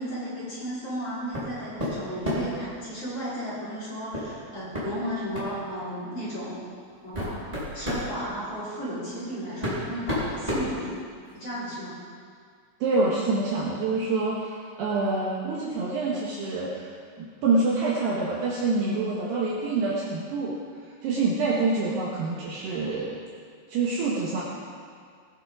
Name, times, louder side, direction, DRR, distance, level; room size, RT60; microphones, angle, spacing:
voice 1, 0.0-6.7 7.0-7.4 7.7-11.0 11.3-12.0, equal, 30° left, -11 dB, 5.0 m, -34 dB
sound 1, 1.3-1.5 1.8-2.6 4.1-4.3 4.7-4.9 5.3-5.5 6.4-6.5 6.9-8.1 9.1-9.2 9.6-11.4, left 1 dB, 10° right, 3.6 m, -30 dB
voice 2, 12.8-16.9 17.2-20.6 21.0-23.1 23.7-24.4, right 3 dB, 70° right, -5 dB, 2.9 m, -26 dB
19.5 x 10.5 x 3.8 m, 2.1 s
omnidirectional pair, 6.0 m